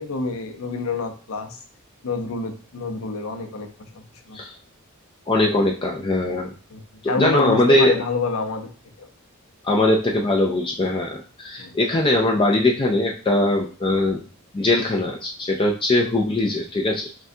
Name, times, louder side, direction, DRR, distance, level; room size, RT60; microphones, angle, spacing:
voice 1, 0.0-1.6 2.0-3.7 3.9-4.4 6.7-6.8 7.1-8.7 9.0-9.1 11.6-11.7, left 4 dB, 75° left, 4 dB, 0.7 m, -28 dB
voice 2, 5.3-6.5 7.0-8.0 9.6-14.2 14.5-17.2, left 1 dB, 25° left, 1 dB, 0.3 m, -21 dB
6.0 x 2.2 x 2.7 m, 0.39 s
head